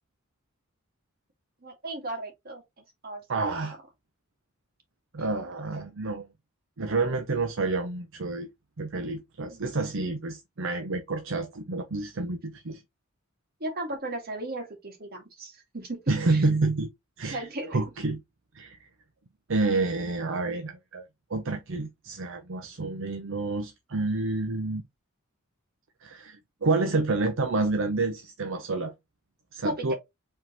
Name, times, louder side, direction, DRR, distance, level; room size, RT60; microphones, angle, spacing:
voice 1, 1.6-2.6 3.0-3.8 9.4-9.6 13.6-16.4 17.3-17.8 29.6-30.0, right 1 dB, 45° right, 2.0 m, -36 dB
voice 2, 3.3-3.8 5.1-6.3 6.8-8.5 8.8-12.8 16.1-16.9 17.2-17.5 17.7-18.2 18.5-18.8 19.5-21.0 21.3-24.8 26.0-28.9 29.5-29.9, right 3 dB, 65° right, 0.7 m, -29 dB
4.9 x 3.7 x 2.9 m
head